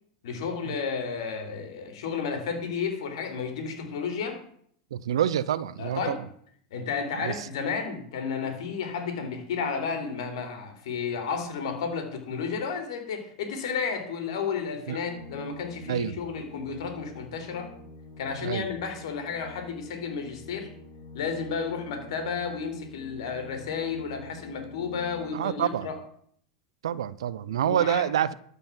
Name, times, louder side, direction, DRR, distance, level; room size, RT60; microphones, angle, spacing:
voice 1, 0.2-4.4 5.8-6.2 6.7-17.7 18.2-20.7 21.1-26.0 27.5-28.1, left 5 dB, 75° left, 3.3 m, -32 dB
voice 2, 4.9-6.2 7.2-7.5 14.9-15.0 15.9-16.2 18.4-18.7 25.3-25.9 26.8-28.3, right 10 dB, 80° right, 0.6 m, -27 dB
Organ, 14.9-25.6, left 3 dB, 60° left, 3.7 m, -47 dB
13.0 x 5.5 x 7.3 m
hypercardioid pair, 110°, 3 cm